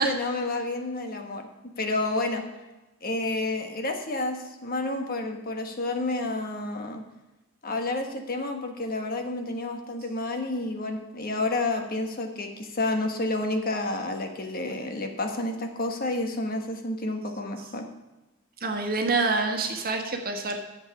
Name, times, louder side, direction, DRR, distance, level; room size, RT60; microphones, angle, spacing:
voice 1, 0.0-1.5 1.8-2.4 3.0-7.0 7.6-17.9, left 2 dB, 45° left, 4 dB, 1.3 m, -30 dB
voice 2, 18.6-20.6, right 3 dB, 45° right, 3 dB, 1.5 m, -26 dB
11.5 x 7.5 x 5.9 m, 1.1 s
head